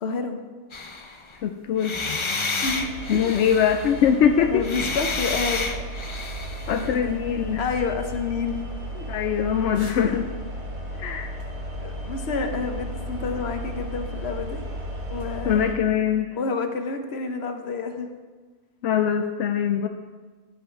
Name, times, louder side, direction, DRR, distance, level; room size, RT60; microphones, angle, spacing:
voice 1, 0.0-0.4 2.6-3.3 4.4-5.6 6.7-7.2 7.6-8.6 8.9-9.0 10.0-10.2 10.9-11.2 11.8-14.6 15.1-15.7 16.3-18.1, left 4 dB, 65° left, 6 dB, 1.2 m, -29 dB
sound 1, 0.7-1.4 1.8-4.1 4.6-7.0, left 3 dB, 30° left, 0.6 m, -30 dB
voice 2, 1.4-1.9 3.1-4.6 6.7-7.7 9.1-10.3 11.0-11.3 15.4-16.3 18.8-19.9, left 8 dB, 85° left, 6 dB, 0.9 m, -22 dB
sound 2, 2.7-15.7, right 1 dB, 70° right, 1.6 m, -34 dB
15.0 x 5.6 x 4.6 m, 1.3 s
omnidirectional pair, 1.2 m